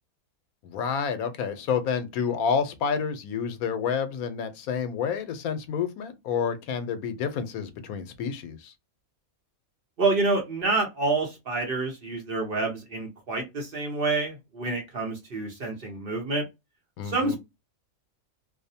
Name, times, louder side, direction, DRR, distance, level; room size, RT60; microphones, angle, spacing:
voice 1, 0.6-8.7 17.0-17.4, left 6 dB, 80° left, 1.1 m, -29 dB
voice 2, 10.0-16.4 17.0-17.4, right 3 dB, 50° right, 0.8 m, -28 dB
2.6 x 2.0 x 2.6 m
omnidirectional pair, 1.5 m